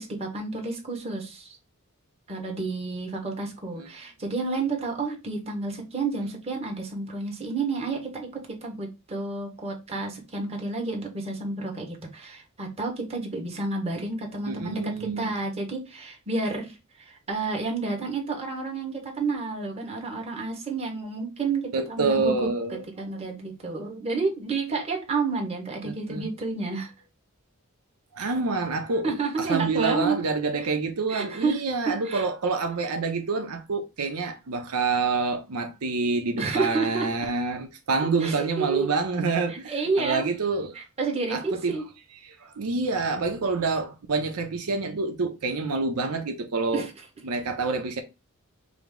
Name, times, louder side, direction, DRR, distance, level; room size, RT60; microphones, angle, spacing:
voice 1, 0.0-1.6 2.3-8.3 8.6-22.5 23.0-26.9 28.2-28.3 29.0-30.2 31.1-31.6 31.8-32.3 36.4-37.1 38.2-38.9 39.5-40.3 40.7-41.8 46.7-46.9, right 3 dB, 30° right, 1.2 m, -30 dB
voice 2, 14.5-15.4 21.7-22.8 25.8-26.3 28.1-29.1 29.4-40.8 41.3-41.8 42.2-46.9 47.2-48.0, right 4 dB, 80° right, 0.6 m, -27 dB
5.0 x 2.0 x 3.6 m
head